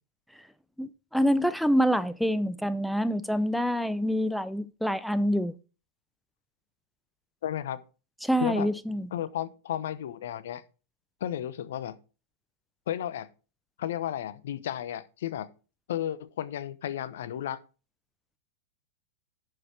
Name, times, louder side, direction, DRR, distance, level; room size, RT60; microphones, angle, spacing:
voice 1, 0.8-5.5 8.2-9.1, equal, ahead, 0.6 m, -26 dB
voice 2, 7.4-7.8 8.4-8.7 9.1-10.6 11.2-12.0 12.9-13.3 13.8-15.5 15.9-17.6, left 11 dB, 70° left, 0.9 m, -33 dB
11.0 x 6.7 x 4.6 m
hypercardioid pair, 105°, 0 cm